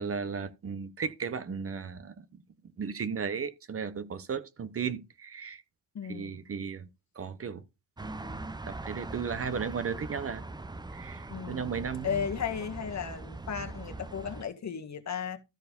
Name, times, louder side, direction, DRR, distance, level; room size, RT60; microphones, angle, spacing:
voice 1, 0.0-2.4 2.8-5.6 6.1-6.9 7.2-7.6 8.0-10.4 10.9-12.3, right 6 dB, 35° right, 0.9 m, -35 dB
voice 2, 5.9-6.4 11.3-15.4, left 7 dB, 40° left, 1.7 m, -35 dB
sound 1, 8.0-14.4, right 2 dB, 10° right, 0.5 m, -41 dB
13.5 x 4.6 x 5.2 m
wide cardioid pair, 150°, 42 cm